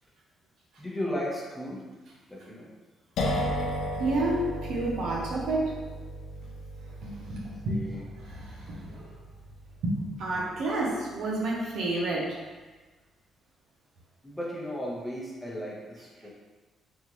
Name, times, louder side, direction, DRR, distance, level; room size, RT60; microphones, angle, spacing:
voice 1, 0.8-1.8 2.3-2.7 7.7-8.0 14.2-16.3, equal, 5° left, -4 dB, 0.8 m, -35 dB
sound 1, 3.2-10.7, equal, 80° left, 0.5 m, -35 dB
voice 2, 4.0-5.8 6.8-7.8 8.2-9.1 9.8-12.4, right 2 dB, 75° right, -3 dB, 0.7 m, -30 dB
3.6 x 2.4 x 3.0 m, 1.3 s
cardioid pair, 90°, 0 cm